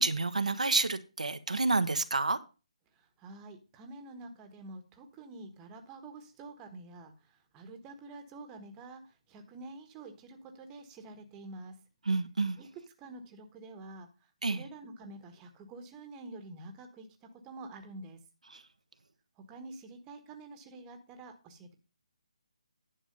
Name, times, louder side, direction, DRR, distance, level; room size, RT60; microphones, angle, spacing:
voice 1, 0.0-2.4 12.1-12.6 14.4-14.6 18.5-18.6, right 3 dB, 85° right, 1.1 m, -29 dB
voice 2, 3.0-11.7 12.6-12.7 13.0-14.1 14.4-18.2 19.4-21.7, right 2 dB, 15° right, 1.4 m, -48 dB
10.0 x 6.1 x 5.3 m
figure-of-eight pair, 155°, 4 cm